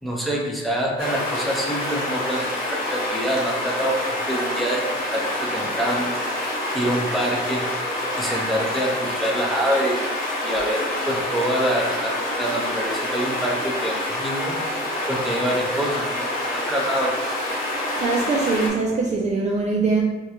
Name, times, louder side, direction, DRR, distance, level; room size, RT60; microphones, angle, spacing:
voice 1, 0.0-4.8 5.1-7.7 8.2-10.0 10.4-14.6 15.1-17.1, right 1 dB, ahead, -3 dB, 0.8 m, -26 dB
sound 1, 1.0-18.7, left 1 dB, 85° left, 1.0 m, -27 dB
voice 2, 18.0-20.0, right 3 dB, 35° right, -1 dB, 0.4 m, -22 dB
3.6 x 2.2 x 2.9 m, 1.1 s
cardioid pair, 90°, 20 cm